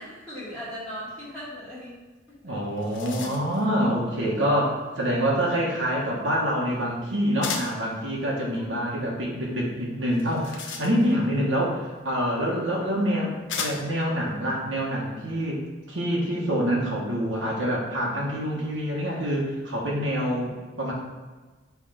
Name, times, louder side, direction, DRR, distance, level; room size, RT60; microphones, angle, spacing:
voice 1, 0.0-2.0 2.4-2.5 8.6-9.2, equal, 5° left, -12 dB, 1.6 m, -39 dB
sound 1, 2.3-2.4 2.6-3.6 7.4-7.9 10.1-11.3 12.4-12.5 13.5-14.0, left 5 dB, 70° left, 0.7 m, -35 dB
voice 2, 2.4-20.9, equal, 70° right, -4 dB, 1.3 m, -26 dB
5.9 x 3.5 x 5.0 m, 1.3 s
head